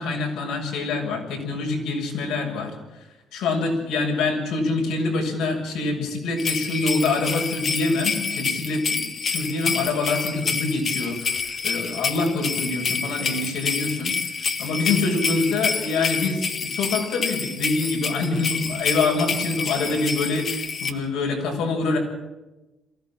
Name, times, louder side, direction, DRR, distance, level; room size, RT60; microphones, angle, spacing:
voice 1, 0.0-3.0 3.3-22.0, left 3 dB, 90° left, 1 dB, 7.0 m, -25 dB
sound 1, 6.4-20.9, left 5 dB, 35° left, 1.6 m, -28 dB
23.0 x 16.0 x 9.0 m, 1.1 s
cardioid pair, 165°, 0 cm